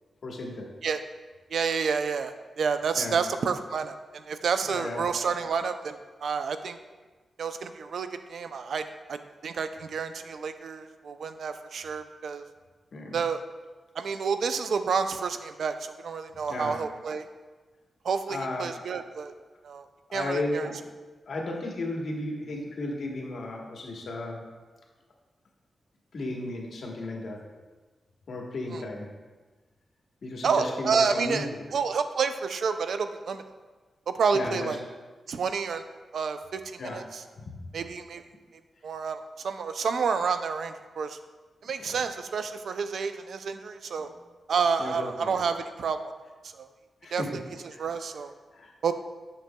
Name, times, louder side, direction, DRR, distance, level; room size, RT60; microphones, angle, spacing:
voice 1, 0.2-0.7 2.9-3.2 4.7-5.0 12.9-13.2 16.5-16.8 18.3-18.8 20.1-20.8 21.3-24.4 26.1-27.5 28.3-29.1 30.2-31.6 34.3-34.7 36.8-37.0 37.4-37.6 41.8-42.0 44.0-44.1 44.8-45.3 47.0-47.3 48.5-48.7, left 2 dB, 65° left, -1 dB, 1.2 m, -34 dB
voice 2, 1.5-6.8 7.4-9.2 9.4-12.4 13.1-13.4 14.0-17.3 18.0-19.3 19.6-19.9 20.1-20.7 28.7-28.8 30.4-33.4 34.1-34.8 35.3-35.8 36.1-37.2 37.7-38.2 38.8-41.2 41.6-44.1 44.5-46.1 46.5-46.7 47.1-47.2 47.8-48.3 48.8-48.9, right 5 dB, 75° right, 9 dB, 0.3 m, -29 dB
7.6 x 6.4 x 2.2 m, 1.3 s
wide cardioid pair, 95°, 0 cm